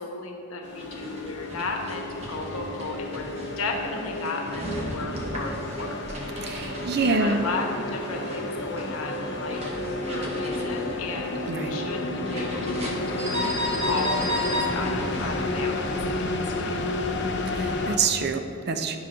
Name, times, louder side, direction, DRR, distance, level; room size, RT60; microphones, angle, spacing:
voice 1, 0.0-3.3 3.6-6.0 7.0-9.6 10.1-13.4 13.9-16.3 16.6-17.0, left 3 dB, 85° left, 2 dB, 1.1 m, -34 dB
sound 1, 0.6-18.0, left 2 dB, 55° left, 0.7 m, -31 dB
sound 2, 0.7-16.0, equal, 30° right, 1.1 m, -35 dB
voice 2, 6.4-7.5 11.5-11.8 17.5-19.0, right 4 dB, 50° right, 7 dB, 0.5 m, -26 dB
10.5 x 4.0 x 6.1 m, 2.9 s
head